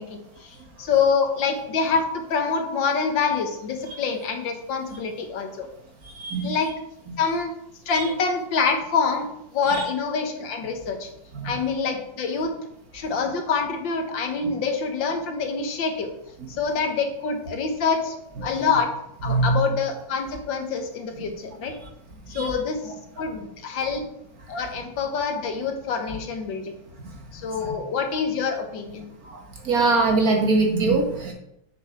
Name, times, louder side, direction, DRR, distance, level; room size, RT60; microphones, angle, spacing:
voice 1, 0.0-5.7 6.4-6.7 7.2-7.5 7.9-9.3 9.5-11.1 11.4-12.5 12.9-16.1 16.5-18.1 18.4-18.9 19.2-21.7 22.3-24.0 24.5-26.7 27.3-29.1, left 5 dB, 75° left, 5 dB, 2.0 m, -26 dB
voice 2, 6.2-6.5 11.4-11.5 19.3-19.6 22.3-22.5 29.3-29.4 29.7-31.3, right 3 dB, 50° right, 1 dB, 2.1 m, -21 dB
7.8 x 6.9 x 5.9 m, 0.79 s
omnidirectional pair, 2.0 m